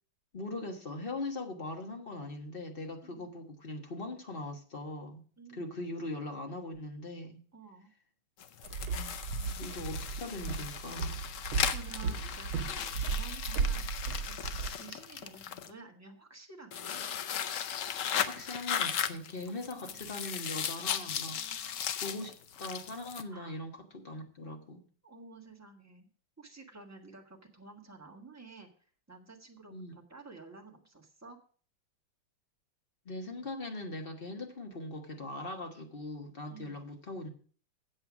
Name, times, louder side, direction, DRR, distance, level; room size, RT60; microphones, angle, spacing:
voice 1, 0.3-5.2 5.5-7.4 8.9-11.2 18.3-24.8 29.7-29.9 33.0-37.3, left 2 dB, 30° left, 1.3 m, -41 dB
voice 2, 5.4-5.7 7.5-7.9 11.2-17.0 19.7-20.1 21.3-21.8 23.3-23.6 25.0-26.1 26.4-28.7 29.1-31.4 36.5-36.9, right 4 dB, 10° right, 1.4 m, -52 dB
sound 1, 8.4-15.7 16.7-23.2, left 8 dB, 70° left, 0.7 m, -37 dB
Walk footsteps, 8.6-14.7, right 5 dB, 85° right, 1.6 m, -35 dB
8.2 x 7.8 x 6.0 m
omnidirectional pair, 2.1 m